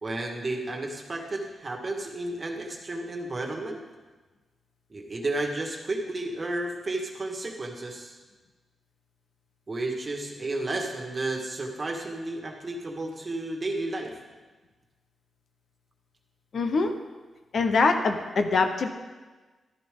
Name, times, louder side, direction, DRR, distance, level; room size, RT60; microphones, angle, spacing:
voice 1, 0.0-3.8 4.9-8.2 9.7-14.2, right 2 dB, 35° right, 2 dB, 1.7 m, -32 dB
voice 2, 16.5-16.9 17.5-18.9, left 4 dB, 60° left, 6 dB, 1.0 m, -23 dB
13.0 x 11.0 x 3.8 m, 1.3 s
cardioid pair, 100°, 0 cm